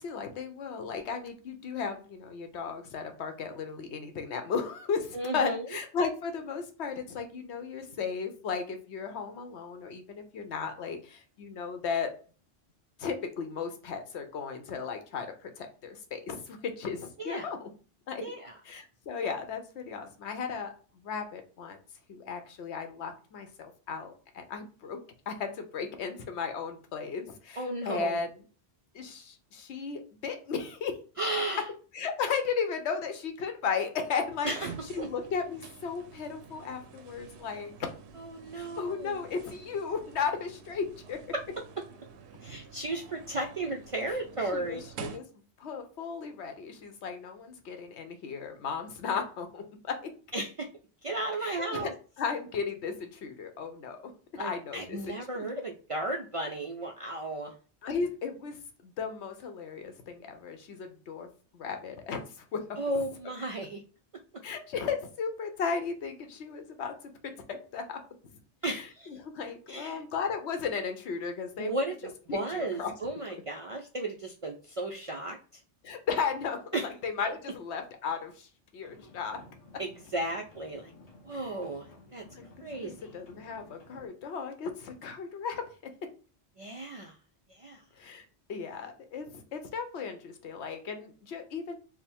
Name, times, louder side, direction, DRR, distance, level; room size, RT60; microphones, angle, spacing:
voice 1, 0.0-12.1 13.0-17.7 18.1-18.2 18.7-21.8 22.1-25.0 25.3-28.3 28.9-31.0 31.9-34.5 34.9-37.7 38.5-41.2 44.5-45.2 45.6-50.1 51.4-51.9 52.2-54.1 54.4-55.4 57.8-58.6 58.8-61.3 61.5-63.0 64.4-67.0 67.5-68.0 68.7-71.8 72.3-72.9 75.8-79.4 81.3-81.5 82.3-85.7 88.0-91.8, left 5 dB, 80° left, 6 dB, 1.0 m, -35 dB
voice 2, 5.1-5.7 17.2-17.5 18.2-18.6 27.6-28.2 31.2-31.7 34.4-34.7 35.0-35.1 38.2-39.2 41.3-41.6 42.4-44.8 50.3-50.7 51.0-51.9 54.4-57.5 62.8-63.8 68.6-69.1 69.7-70.0 71.6-75.4 76.7-76.9 77.3-77.4 79.8-80.9 81.2-82.2 82.6-82.9 86.6-87.2 87.5-87.8, right 2 dB, 60° right, 2 dB, 0.3 m, -34 dB
sound 1, 34.3-45.2, right 6 dB, 80° right, 0.8 m, -48 dB
sound 2, 78.8-84.1, left 2 dB, 40° left, 0.8 m, -54 dB
3.5 x 2.1 x 4.3 m, 0.37 s
omnidirectional pair, 1.1 m